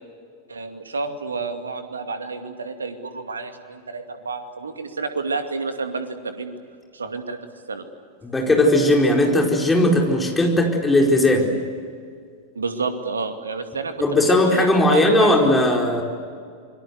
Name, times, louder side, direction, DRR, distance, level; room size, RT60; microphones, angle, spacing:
voice 1, 0.5-6.5 6.9-7.4 7.7-7.8 12.6-15.3, right 4 dB, 75° right, 7 dB, 2.4 m, -29 dB
voice 2, 8.2-11.5 14.0-16.0, left 1 dB, 10° left, 1 dB, 4.8 m, -18 dB
27.0 x 23.5 x 8.2 m, 2.1 s
figure-of-eight pair, 90°, 0 cm